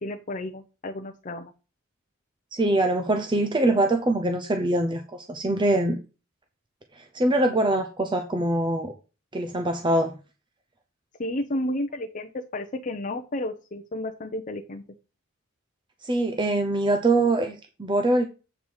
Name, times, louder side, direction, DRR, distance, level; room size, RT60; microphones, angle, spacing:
voice 1, 0.0-1.5 11.2-14.8, left 1 dB, 40° left, 3 dB, 0.8 m, -32 dB
voice 2, 2.5-6.0 7.0-8.9 9.3-10.1 16.0-18.3, right 2 dB, 25° right, 6 dB, 0.7 m, -23 dB
8.1 x 4.7 x 5.5 m, 0.33 s
head